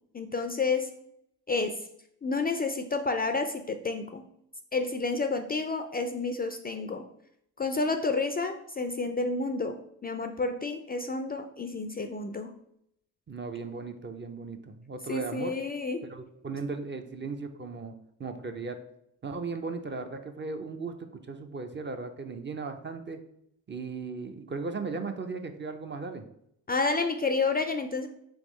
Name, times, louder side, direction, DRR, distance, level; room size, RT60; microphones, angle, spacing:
voice 1, 0.1-0.9 1.5-1.8 2.2-4.2 4.7-7.0 7.6-12.5 15.1-16.1 26.7-28.1, left 3 dB, 25° left, 7 dB, 0.4 m, -30 dB
voice 2, 13.3-15.5 16.0-17.9 18.2-18.8 19.2-23.2 23.7-26.2, right 4 dB, 30° right, 7 dB, 0.5 m, -37 dB
3.5 x 3.4 x 3.1 m, 0.74 s
supercardioid pair, 50°, 37 cm